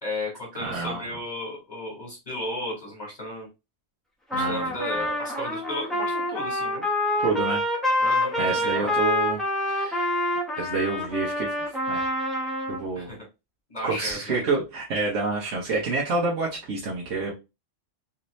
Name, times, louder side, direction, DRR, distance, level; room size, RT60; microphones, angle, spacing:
voice 1, 0.0-3.5 4.3-6.8 8.0-8.9 12.9-13.2 13.7-14.4, left 1 dB, 35° left, -2 dB, 1.3 m, -34 dB
voice 2, 0.6-1.0 4.3-5.0 7.2-7.6 8.4-9.4 9.7-10.2 10.6-12.1 12.7-13.2 13.8-17.3, right 3 dB, 75° right, -4 dB, 1.2 m, -28 dB
Trumpet, 4.3-12.8, left 1 dB, ahead, 0.6 m, -27 dB
3.2 x 2.7 x 3.1 m, 0.26 s
omnidirectional pair, 1.3 m